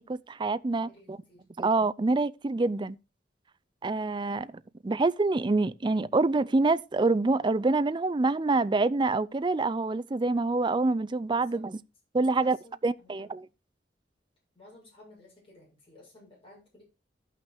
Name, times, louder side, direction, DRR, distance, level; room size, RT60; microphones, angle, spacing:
voice 1, 0.1-1.2 1.6-3.0 3.8-4.5 4.8-11.8 12.1-12.6 12.8-13.5, right 3 dB, 25° right, 0.4 m, -26 dB
voice 2, 0.8-1.4 11.3-11.6 12.2-13.3 14.6-16.8, left 1 dB, 30° left, 7.4 m, -55 dB
13.5 x 5.8 x 4.4 m
head